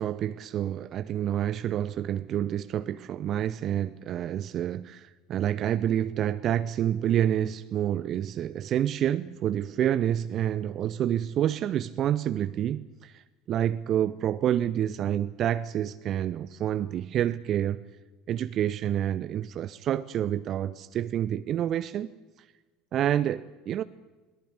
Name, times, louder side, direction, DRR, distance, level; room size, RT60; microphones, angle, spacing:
voice 1, 0.0-17.8 18.3-22.1 22.9-23.8, right 10 dB, 40° right, 0.7 m, -28 dB
22.0 x 18.5 x 9.7 m
figure-of-eight pair, 65°, 0 cm